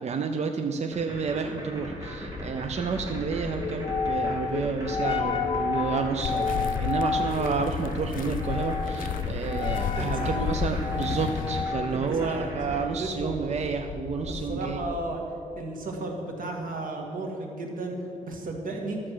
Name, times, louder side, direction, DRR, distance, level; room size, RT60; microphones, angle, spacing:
voice 1, 0.0-14.9, right 5 dB, 55° right, 5 dB, 0.6 m, -30 dB
sound 1, 0.9-12.8, right 1 dB, 25° right, 3.0 m, -39 dB
sound 2, 1.8-15.1, left 5 dB, 45° left, 0.9 m, -32 dB
sound 3, 6.2-11.7, left 8 dB, 85° left, 0.4 m, -32 dB
voice 2, 10.0-10.4 12.1-12.5 13.0-13.5 14.3-15.2 15.6-19.0, right 2 dB, 90° right, 2 dB, 1.9 m, -34 dB
12.5 x 7.6 x 6.2 m, 2.8 s
wide cardioid pair, 120°, 14 cm